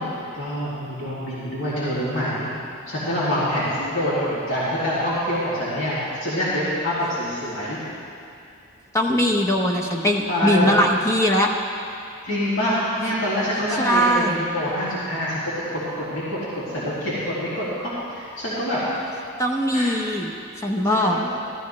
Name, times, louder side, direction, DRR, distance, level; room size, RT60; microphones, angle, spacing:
voice 1, 0.0-2.5 2.9-7.8 10.3-10.7 12.3-18.8 19.7-19.9 20.8-21.3, equal, 65° left, -10 dB, 2.6 m, -26 dB
voice 2, 8.9-11.5 13.8-14.4 19.4-20.3 20.6-21.2, equal, 15° left, 1 dB, 0.9 m, -20 dB
14.5 x 14.0 x 3.3 m, 2.5 s
head